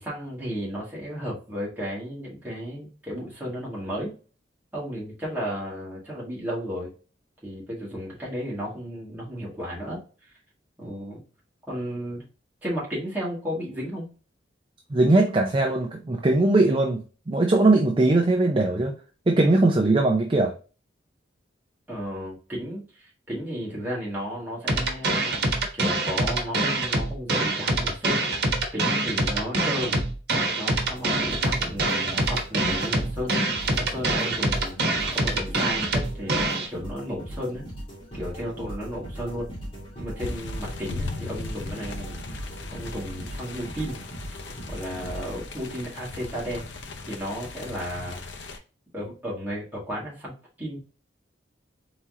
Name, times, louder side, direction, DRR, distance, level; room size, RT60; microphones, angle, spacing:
voice 1, 0.0-4.1 4.7-6.9 7.4-10.0 10.8-11.2 11.7-12.2 12.6-14.1 21.9-28.2 28.7-30.0 30.6-33.4 33.7-34.8 35.1-37.6 38.1-39.5 40.0-44.0 44.7-46.6 47.1-48.6 48.9-50.8, equal, 10° right, 2.1 m, -34 dB
voice 2, 14.9-18.9 19.3-20.5, right 2 dB, 30° right, 0.5 m, -20 dB
sound 1, 24.7-36.7, right 2 dB, 60° right, 1.2 m, -25 dB
sound 2, 30.7-46.0, equal, 30° left, 2.2 m, -39 dB
sound 3, 40.2-48.6, left 3 dB, 75° left, 0.7 m, -38 dB
4.3 x 3.8 x 2.8 m
head